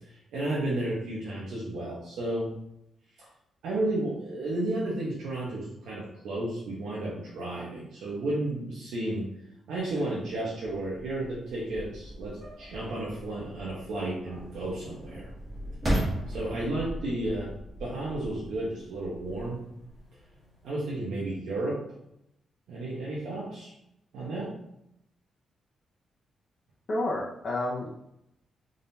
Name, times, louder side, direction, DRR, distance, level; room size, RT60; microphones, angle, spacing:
voice 1, 0.3-2.5 3.2-3.3 3.6-9.3 9.7-15.3 16.3-17.5 17.8-19.7 20.6-21.8 22.7-23.7 24.1-24.6, right 1 dB, 90° right, -6 dB, 1.1 m, -32 dB
sound 1, 9.8-20.8, right 1 dB, 20° right, 1.6 m, -38 dB
voice 2, 26.9-27.9, left 1 dB, 40° left, -6 dB, 0.7 m, -30 dB
3.7 x 3.7 x 2.8 m, 0.78 s
wide cardioid pair, 170°, 0 cm